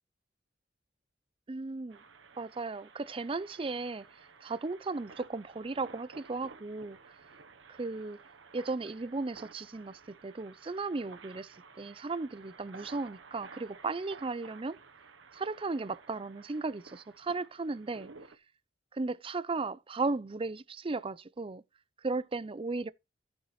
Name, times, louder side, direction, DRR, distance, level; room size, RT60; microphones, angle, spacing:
voice 1, 1.5-2.0 2.4-4.1 4.4-7.0 7.7-8.2 8.5-14.8 15.3-18.1 18.9-21.6 22.0-22.9, right 3 dB, 30° right, 0.5 m, -36 dB
sound 1, 1.9-18.4, right 4 dB, 85° right, 1.0 m, -54 dB
14.0 x 7.0 x 3.1 m
head